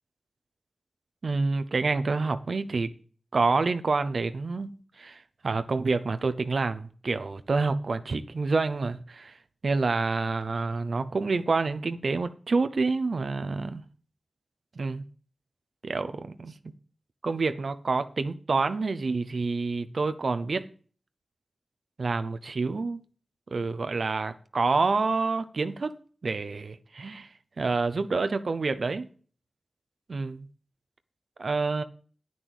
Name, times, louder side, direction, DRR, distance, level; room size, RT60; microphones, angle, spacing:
voice 1, 1.2-2.9 3.3-9.3 9.6-13.8 14.8-15.0 15.8-16.6 17.2-20.7 22.0-23.0 23.5-25.9 26.2-27.3 27.6-29.1 30.1-30.5 31.4-31.8, right 3 dB, 65° right, 0.7 m, -28 dB
9.0 x 6.3 x 8.2 m
cardioid pair, 45°, 0 cm